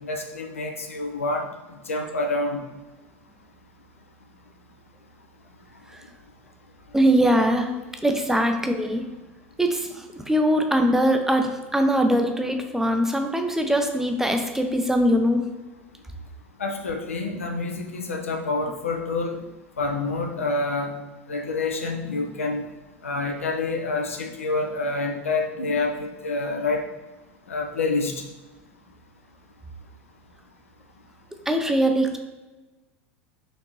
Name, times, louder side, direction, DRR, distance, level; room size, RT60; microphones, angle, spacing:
voice 1, 0.0-1.5 1.9-2.6 16.6-19.4 19.8-20.9 21.3-22.6 23.0-26.8 27.5-28.1, left 3 dB, 85° left, 3 dB, 0.5 m, -27 dB
voice 2, 6.9-7.7 8.0-9.0 9.6-15.5 31.5-32.2, equal, 5° right, 4 dB, 0.5 m, -22 dB
4.5 x 2.7 x 3.0 m, 1.1 s
hypercardioid pair, 80°, 7 cm